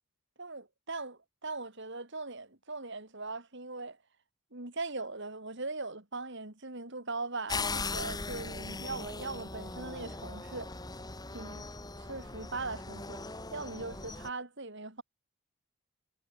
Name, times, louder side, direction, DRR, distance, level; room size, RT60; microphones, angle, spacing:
voice 1, 0.4-4.0 4.5-10.7 11.3-11.7 12.0-13.2 13.5-15.0, right 3 dB, 55° right, 3.2 m, -40 dB
sound 1, 7.5-14.3, left 3 dB, 15° left, 3.8 m, -39 dB
head